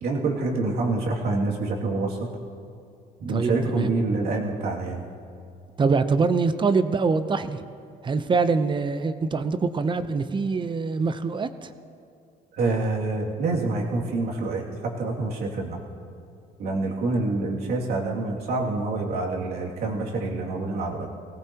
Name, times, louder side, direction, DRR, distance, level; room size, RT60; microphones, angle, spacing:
voice 1, 0.0-2.3 3.2-5.1 12.5-15.8 16.6-21.1, right 3 dB, 70° right, -2 dB, 2.5 m, -27 dB
voice 2, 3.3-3.9 5.8-7.6 8.0-11.7, right 4 dB, 30° right, 11 dB, 0.7 m, -24 dB
20.5 x 17.5 x 2.9 m, 2.4 s
cardioid pair, 110°, 17 cm